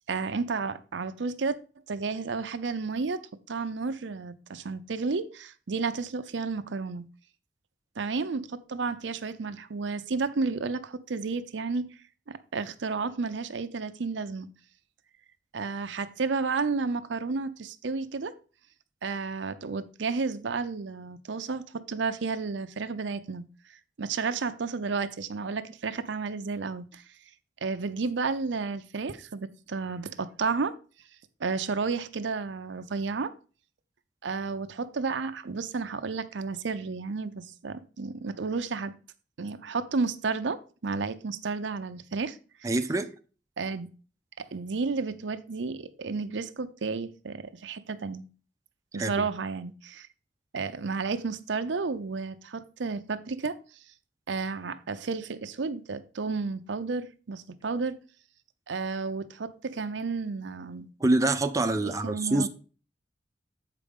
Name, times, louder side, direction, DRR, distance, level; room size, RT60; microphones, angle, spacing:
voice 1, 0.1-1.6 1.9-3.2 3.5-7.0 8.0-11.9 12.3-14.5 15.5-18.3 19.0-23.4 24.0-27.0 27.6-30.7 31.4-33.3 34.2-38.9 39.4-42.4 42.6-42.7 43.6-43.9 44.4-48.2 48.9-50.1 50.5-53.6 54.3-58.0 58.7-60.9 61.8-62.5, right 4 dB, 70° right, 0.6 m, -32 dB
voice 2, 42.6-43.1 48.9-49.3 61.0-62.5, right 2 dB, 20° right, 0.5 m, -25 dB
7.5 x 5.0 x 5.3 m
head